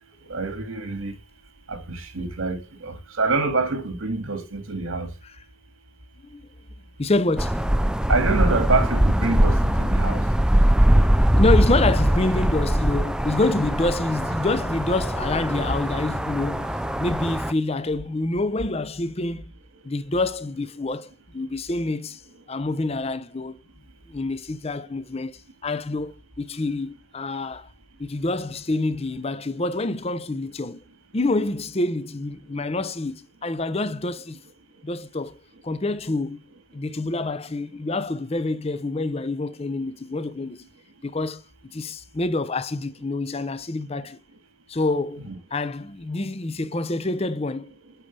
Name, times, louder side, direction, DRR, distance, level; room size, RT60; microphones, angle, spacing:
voice 1, 0.3-1.1 1.7-5.1 8.1-10.2 45.3-45.4, right 3 dB, 80° right, 2.1 m, -26 dB
voice 2, 7.0-7.7 11.0-19.5 19.8-22.2 22.5-23.6 24.1-27.7 28.0-30.8 31.1-34.4 34.8-36.4 36.7-40.6 41.0-41.4 41.7-44.2 44.7-47.7, left 2 dB, 30° left, 0.6 m, -27 dB
sound 1, 7.4-17.5, right 1 dB, 5° right, 0.3 m, -21 dB
8.3 x 5.4 x 3.3 m
head